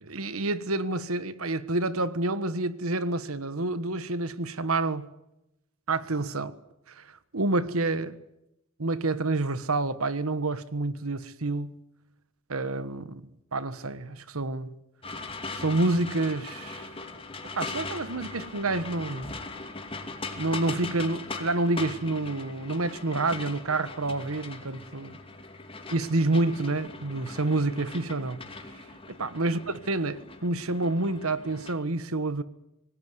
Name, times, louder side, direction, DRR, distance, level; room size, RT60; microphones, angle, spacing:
voice 1, 0.0-5.1 5.9-6.5 6.9-8.2 8.8-11.8 12.5-14.8 15.5-16.9 17.5-19.4 20.4-25.2 25.9-28.4 29.1-29.6 29.9-32.4, right 2 dB, 80° right, 1.4 m, -28 dB
sound 1, 15.0-31.8, left 3 dB, 25° left, 2.6 m, -40 dB
26.0 x 19.0 x 8.1 m
head